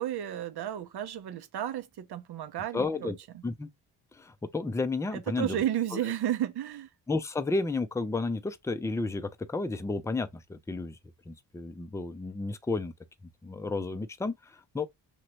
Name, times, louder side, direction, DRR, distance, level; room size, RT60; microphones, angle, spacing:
voice 1, 0.0-3.1 5.1-6.9, right 11 dB, 65° right, 0.8 m, -32 dB
voice 2, 2.7-3.2 3.4-3.7 4.1-5.6 5.9-6.0 7.1-11.0 11.3-12.9 13.4-14.9, left 3 dB, 5° left, 0.5 m, -32 dB
3.0 x 2.4 x 2.9 m
supercardioid pair, 55°, 43 cm